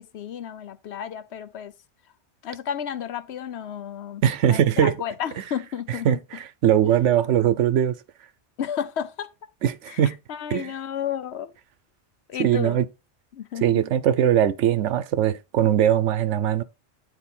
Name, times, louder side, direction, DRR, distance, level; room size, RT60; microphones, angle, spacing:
voice 1, 0.0-1.7 2.4-6.1 6.8-6.9 8.6-9.3 9.9-11.5 12.3-12.8 13.3-13.8, left 9 dB, 70° left, 0.9 m, -32 dB
voice 2, 4.2-4.9 6.0-7.9 9.6-10.2 10.5-10.7 12.4-12.9 13.6-16.6, right 10 dB, 85° right, 1.0 m, -21 dB
9.2 x 4.4 x 4.3 m
omnidirectional pair, 1.2 m